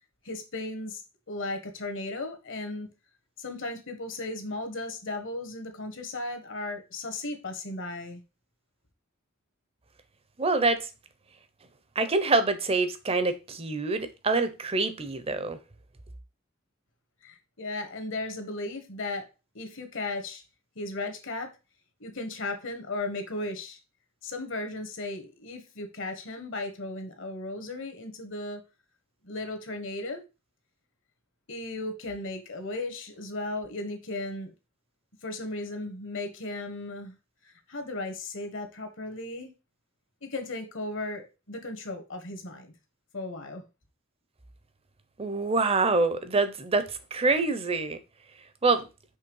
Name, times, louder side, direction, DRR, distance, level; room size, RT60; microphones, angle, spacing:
voice 1, 0.2-1.0 1.3-2.9 3.4-8.2 17.2-19.3 19.5-20.4 20.7-21.5 22.0-23.8 24.2-28.6 29.2-30.2 31.5-34.5 35.2-37.2 37.4-39.5 40.2-42.7 43.1-43.6, left 2 dB, 65° left, 1.4 m, -36 dB
voice 2, 10.4-10.9 12.0-15.6 45.2-48.0 48.6-48.8, right 3 dB, 30° right, 0.7 m, -26 dB
5.6 x 3.4 x 5.4 m
head